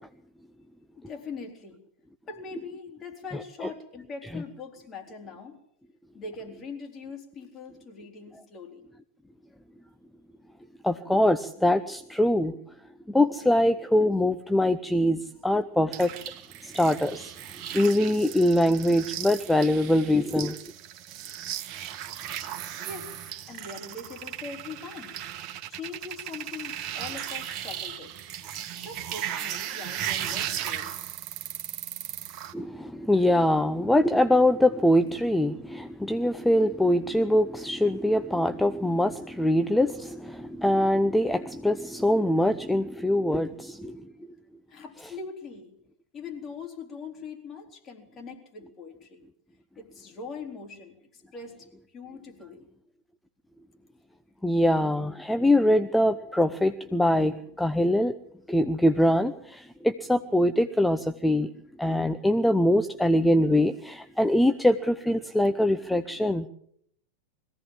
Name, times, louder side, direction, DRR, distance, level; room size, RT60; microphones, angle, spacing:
voice 1, 1.0-1.8 2.3-5.6 6.1-8.9 22.8-25.2 25.7-28.1 28.5-31.0 44.7-45.7 46.1-49.2 49.8-52.6, left 4 dB, 25° left, 3.7 m, -42 dB
voice 2, 10.8-12.6 13.1-16.1 16.6-20.6 32.5-44.1 54.4-58.1 58.5-61.5 61.8-66.5, left 1 dB, 5° left, 0.7 m, -23 dB
sound 1, 15.9-32.5, right 10 dB, 35° right, 1.8 m, -36 dB
22.0 x 16.0 x 7.5 m
figure-of-eight pair, 90°, 0 cm